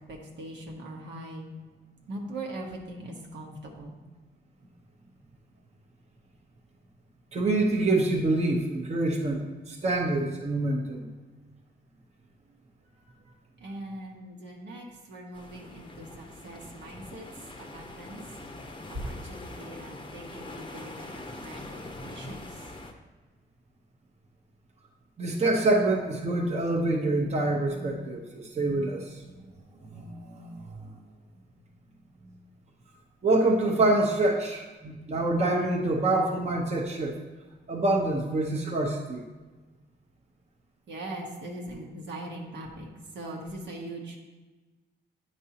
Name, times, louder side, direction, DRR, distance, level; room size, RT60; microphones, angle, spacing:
voice 1, 0.1-1.5 2.1-4.0 13.6-18.2 18.9-22.6 40.9-42.9 43.1-44.2, right 1 dB, 75° right, -1 dB, 1.2 m, -41 dB
voice 2, 7.3-11.1 25.2-29.2 29.8-30.9 33.2-37.2 37.7-39.2, right 2 dB, 35° right, 0 dB, 0.9 m, -26 dB
sound 1, 15.3-22.9, left 2 dB, 25° left, 0.7 m, -43 dB
8.6 x 5.3 x 2.9 m, 1.3 s
cardioid pair, 105°, 18 cm